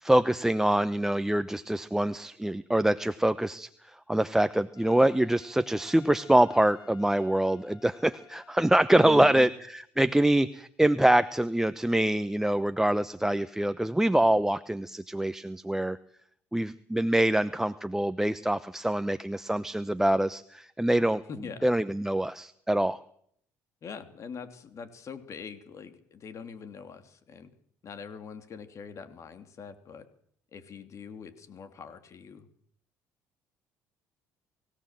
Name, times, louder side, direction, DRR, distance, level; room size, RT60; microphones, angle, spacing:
voice 1, 0.0-16.0 16.5-21.2 21.6-23.0, right 1 dB, 5° right, 12 dB, 0.8 m, -25 dB
Trumpet, 4.7-9.3, left 7 dB, 65° left, 4.3 m, -55 dB
voice 2, 8.9-9.5 21.3-21.7 23.8-27.5 27.8-30.1 30.5-32.5, left 6 dB, 50° left, 9 dB, 3.0 m, -43 dB
24.5 x 16.5 x 7.6 m, 0.65 s
supercardioid pair, 80°, 7 cm